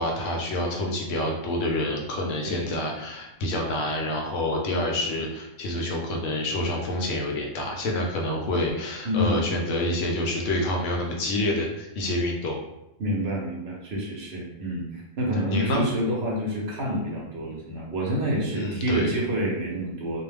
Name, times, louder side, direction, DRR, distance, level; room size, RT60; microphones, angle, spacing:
voice 1, 0.0-12.6 15.5-15.8 18.5-19.1, left 1 dB, 70° left, 0 dB, 0.9 m, -27 dB
voice 2, 9.0-9.6 13.0-20.2, equal, 60° right, -3 dB, 0.8 m, -28 dB
2.4 x 2.1 x 3.2 m, 0.88 s
omnidirectional pair, 1.4 m